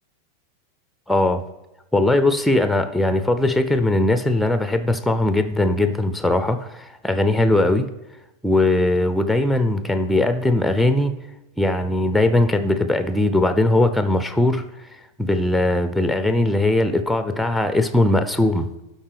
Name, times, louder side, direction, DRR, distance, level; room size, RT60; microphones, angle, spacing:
voice 1, 1.1-1.4 1.9-7.9 8.4-11.1 11.6-14.6 15.2-18.7, left 2 dB, ahead, 9 dB, 0.5 m, -20 dB
12.5 x 4.3 x 3.4 m, 1.0 s
figure-of-eight pair, 90°, 0 cm